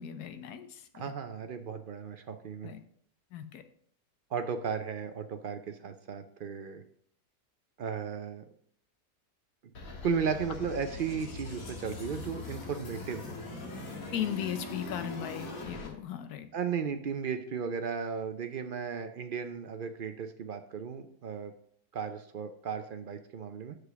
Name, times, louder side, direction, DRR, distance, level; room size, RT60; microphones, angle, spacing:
voice 1, 0.0-1.1 2.6-2.8 3.3-3.6 14.1-16.5, left 9 dB, 80° left, 10 dB, 1.3 m, -37 dB
voice 2, 0.9-2.7 4.3-6.8 7.8-8.4 10.0-13.2 16.5-21.5 21.9-23.8, right 6 dB, 70° right, 8 dB, 0.5 m, -35 dB
sound 1, 9.7-15.9, left 3 dB, 65° left, 1.8 m, -41 dB
6.2 x 4.9 x 6.7 m, 0.62 s
omnidirectional pair, 1.6 m